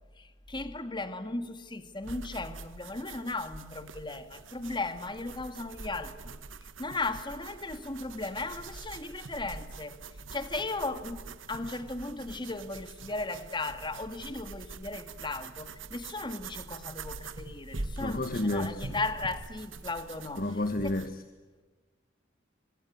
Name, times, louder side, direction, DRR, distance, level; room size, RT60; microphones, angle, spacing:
voice 1, 0.2-6.4 6.8-10.0 10.3-20.4 20.8-20.9, left 3 dB, 25° left, 1.9 m, -36 dB
sound 1, 2.0-21.1, right 3 dB, 90° right, 1.4 m, -44 dB
voice 2, 18.0-19.0 20.4-21.2, left 1 dB, 45° left, 1.5 m, -31 dB
25.0 x 24.0 x 9.7 m
head